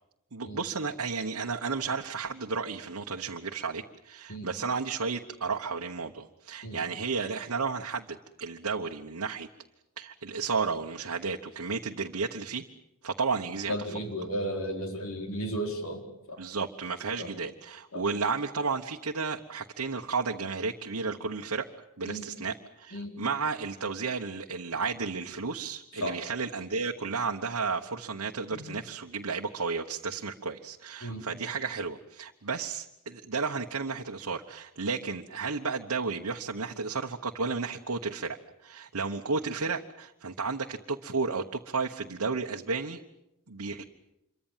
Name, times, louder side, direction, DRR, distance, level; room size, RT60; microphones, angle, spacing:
voice 1, 0.3-9.5 10.0-12.6 13.0-13.7 16.4-21.7 22.0-43.0 43.5-43.8, right 4 dB, 85° right, 1 dB, 1.2 m, -33 dB
voice 2, 13.7-16.0 16.3-16.4 17.2-17.3 17.9-18.1 22.0-22.3 22.9-23.2 26.0-26.2 28.5-28.6 31.0-31.3, equal, 65° left, 3 dB, 4.3 m, -34 dB
27.0 x 23.5 x 7.5 m, 0.87 s
head